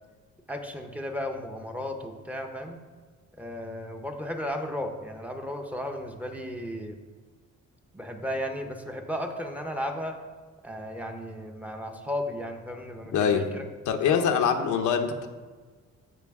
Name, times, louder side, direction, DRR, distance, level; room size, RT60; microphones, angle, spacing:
voice 1, 0.5-2.8 3.4-7.0 7.9-10.2 10.6-13.6 14.1-14.2, left 1 dB, 5° right, 4 dB, 0.8 m, -34 dB
voice 2, 13.1-13.5 13.9-15.3, left 7 dB, 90° left, 5 dB, 0.9 m, -24 dB
14.5 x 5.0 x 3.7 m, 1.4 s
cardioid pair, 130°, 29 cm